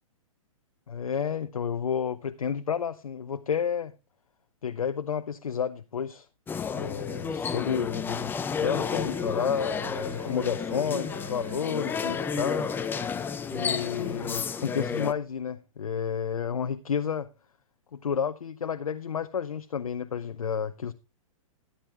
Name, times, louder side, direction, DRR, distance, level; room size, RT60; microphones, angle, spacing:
voice 1, 0.9-3.9 4.6-6.3 6.7-8.3 8.6-12.7 13.5-17.3 17.9-20.9, left 7 dB, 80° left, 0.6 m, -31 dB
sound 1, 6.5-15.1, left 6 dB, 10° left, 0.6 m, -32 dB
Wind instrument woodwind instrument, 8.7-13.1, right 3 dB, 90° right, 6.6 m, -44 dB
13.0 x 11.5 x 2.4 m
hypercardioid pair, 120°, 18 cm